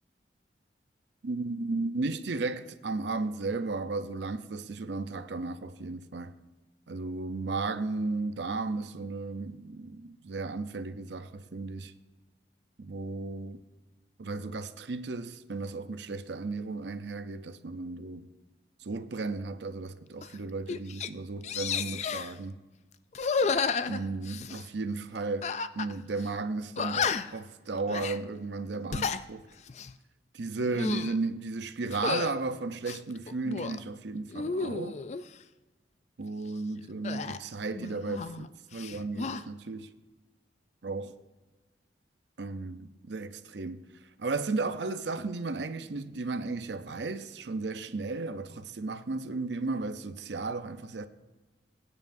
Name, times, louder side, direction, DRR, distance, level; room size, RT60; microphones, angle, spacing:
voice 1, 1.2-6.4 6.9-11.9 12.8-13.6 14.2-18.3 18.8-22.6 23.9-29.5 30.3-35.0 36.2-39.9 40.8-41.1 42.4-43.8 44.2-51.1, right 3 dB, 80° right, 0.6 m, -34 dB
sound 1, 20.2-20.4 20.7-21.1 21.4-22.3 23.1-24.7 25.4-25.9 26.2-26.3 26.8-27.4 27.9-28.2 28.7-29.2 29.7-29.9 30.6-31.2 31.9-32.3 32.8-33.8 34.3-35.2 37.0-38.5 38.7-39.4, left 5 dB, 40° left, 0.4 m, -32 dB
21.0 x 9.6 x 2.6 m
head